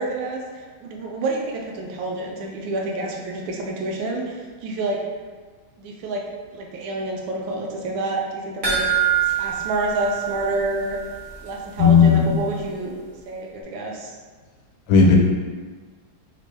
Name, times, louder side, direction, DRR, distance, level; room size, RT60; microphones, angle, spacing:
voice 1, 0.0-5.0 5.8-6.2 6.5-8.9 9.4-11.0 11.4-13.0 13.3-14.1, right 2 dB, 80° right, 0 dB, 1.3 m, -28 dB
sound 1, 8.6-11.2 11.5-11.6 12.0-12.1, right 8 dB, 60° right, 0.5 m, -24 dB
voice 2, 11.8-12.4 14.9-15.2, left 5 dB, 75° left, 0 dB, 1.4 m, -14 dB
3.6 x 2.5 x 3.2 m, 1.5 s
omnidirectional pair, 2.2 m